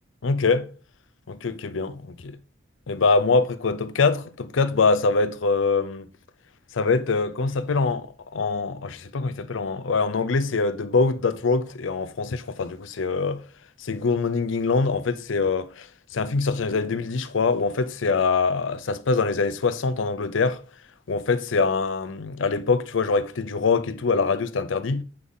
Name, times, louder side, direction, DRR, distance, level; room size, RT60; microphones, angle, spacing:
voice 1, 0.2-0.7 1.3-2.4 2.9-6.1 6.7-13.4 13.8-15.9 16.1-20.6 21.1-25.0, left 4 dB, 75° left, 0.6 m, -24 dB
9.6 x 3.7 x 3.9 m
head